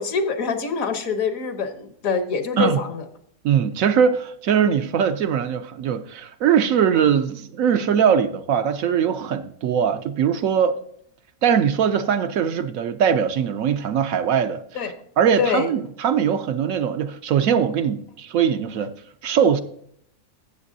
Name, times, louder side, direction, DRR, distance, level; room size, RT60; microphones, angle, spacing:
voice 1, 0.0-3.0 14.7-14.9 15.4-15.7, left 5 dB, 65° left, 1.4 m, -25 dB
voice 2, 3.4-10.8 11.4-18.9 19.2-19.6, right 8 dB, 70° right, 1.0 m, -21 dB
13.5 x 7.9 x 2.7 m
omnidirectional pair, 1.6 m